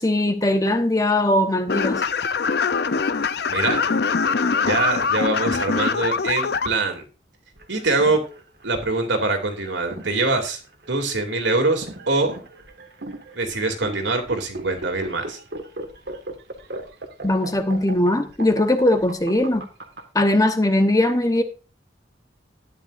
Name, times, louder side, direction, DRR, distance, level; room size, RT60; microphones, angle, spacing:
voice 1, 0.0-2.0 17.2-19.6 20.1-21.4, left 1 dB, 20° left, 1.1 m, -20 dB
sound 1, 1.7-6.7, left 5 dB, 60° left, 0.5 m, -23 dB
voice 2, 3.5-3.8 4.6-7.0 7.7-8.2 8.6-10.6 10.9-12.4 13.3-15.4, right 3 dB, 85° right, 2.7 m, -23 dB
sound 2, 7.6-20.0, right 2 dB, 65° right, 1.8 m, -37 dB
12.5 x 10.0 x 2.6 m
head